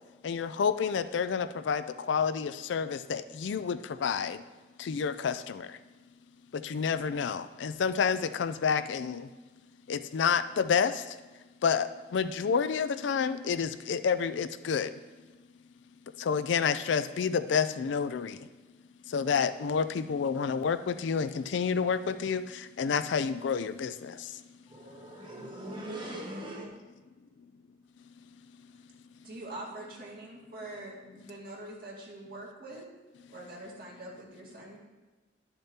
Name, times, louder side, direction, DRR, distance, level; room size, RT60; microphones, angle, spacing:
voice 1, 0.2-4.4 4.8-5.8 6.5-9.3 9.9-11.2 11.6-15.0 16.2-18.5 19.1-24.4, left 6 dB, 70° left, 11 dB, 0.4 m, -29 dB
voice 2, 24.7-26.7, right 1 dB, 25° right, -1 dB, 1.4 m, -40 dB
voice 3, 29.2-32.8 33.3-34.8, right 1 dB, 50° right, -4 dB, 2.1 m, -44 dB
11.5 x 6.8 x 2.8 m, 1.2 s
head